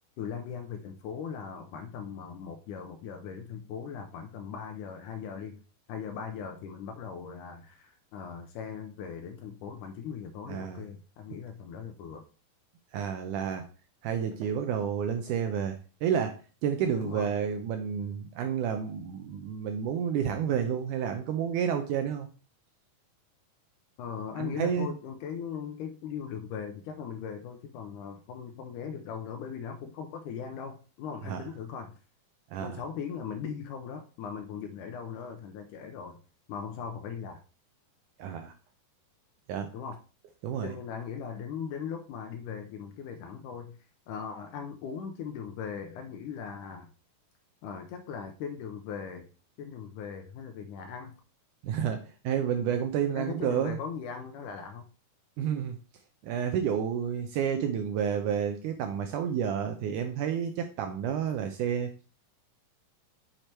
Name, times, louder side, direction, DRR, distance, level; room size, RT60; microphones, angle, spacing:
voice 1, 0.2-5.6 5.9-12.3 16.9-17.3 24.0-32.0 32.6-36.2 36.5-37.4 39.7-40.0 40.6-43.8 44.1-46.9 47.6-49.3 49.6-51.2 53.2-54.9, left 7 dB, 80° left, 6 dB, 1.9 m, -39 dB
voice 2, 10.5-10.8 12.9-13.7 14.0-22.3 24.4-24.9 31.2-31.4 32.5-32.8 38.2-38.5 39.5-39.7 40.4-40.7 51.6-53.8 55.4-55.8 56.2-61.9, right 8 dB, 80° right, 6 dB, 1.8 m, -30 dB
6.6 x 4.5 x 4.3 m, 0.36 s
omnidirectional pair, 4.1 m